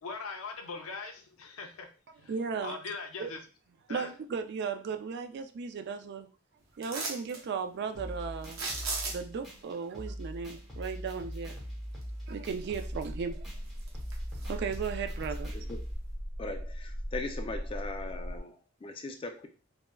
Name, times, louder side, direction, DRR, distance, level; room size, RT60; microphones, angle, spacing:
voice 1, 0.0-1.9 2.2-2.3 2.6-3.4 3.9-4.1, left 4 dB, 90° left, 5 dB, 0.5 m, -40 dB
voice 2, 2.3-2.8 3.2-3.3 3.9-6.3 6.8-8.6 9.1-11.6 12.3-13.5 14.4-15.6, right 6 dB, 55° right, 8 dB, 0.3 m, -36 dB
sound 1, 6.8-7.4 8.4-9.5 12.0-12.1 12.6-13.3 13.7-14.8 15.2-15.3, right 3 dB, 80° right, 0.7 m, -37 dB
sound 2, 7.9-15.9, equal, ahead, 1.0 m, -42 dB
sound 3, 12.5-18.4, equal, 30° right, 1.1 m, -39 dB
voice 3, 16.4-19.5, left 2 dB, 25° left, 4 dB, 0.3 m, -39 dB
3.5 x 2.0 x 2.2 m, 0.37 s
head